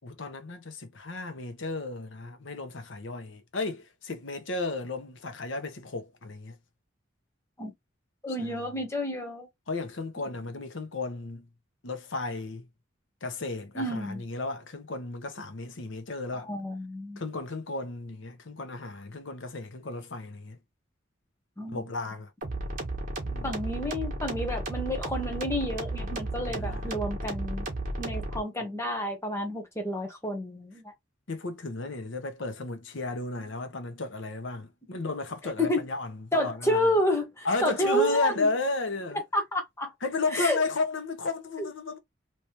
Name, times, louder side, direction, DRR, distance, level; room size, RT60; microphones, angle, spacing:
voice 1, 0.0-6.6 8.4-8.7 9.7-11.5 11.8-12.7 13.2-16.5 17.2-20.6 21.7-22.3 23.2-23.6 26.5-26.9 31.3-36.9 37.4-39.2 40.0-42.0, left 3 dB, 80° left, 0.9 m, -33 dB
voice 2, 8.2-9.5 13.8-14.2 16.3-17.2 21.6-21.8 23.4-27.7 28.0-30.8 35.6-35.8 36.3-38.5 39.3-39.9 40.3-40.6 41.6-41.7, equal, 15° left, 1.0 m, -30 dB
sound 1, 22.4-28.4, right 2 dB, 45° right, 1.3 m, -33 dB
3.2 x 3.1 x 2.8 m
head